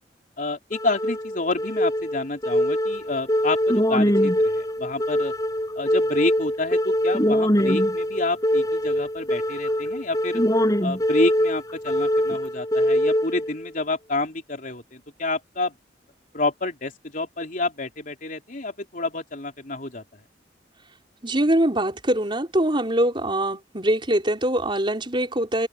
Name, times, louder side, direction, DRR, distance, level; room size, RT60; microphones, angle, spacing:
voice 1, 0.4-5.3 5.8-10.4 10.8-15.7 16.3-20.0, left 2 dB, 50° left, 3.7 m, -29 dB
sound 1, 0.7-13.7, equal, 20° left, 7.6 m, -23 dB
voice 2, 21.2-25.7, right 1 dB, 30° right, 4.6 m, -23 dB
head